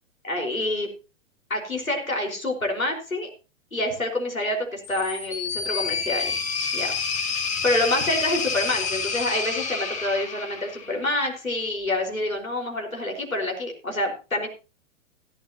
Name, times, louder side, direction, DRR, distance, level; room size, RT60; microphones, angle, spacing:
voice 1, 0.2-0.9 1.5-3.3 3.7-6.3 6.7-6.9 7.6-14.5, left 1 dB, 90° left, 1 dB, 4.9 m, -27 dB
sound 1, 4.8-11.1, left 5 dB, 20° left, 1.6 m, -29 dB
16.0 x 12.0 x 2.9 m, 0.31 s
figure-of-eight pair, 115°, 40 cm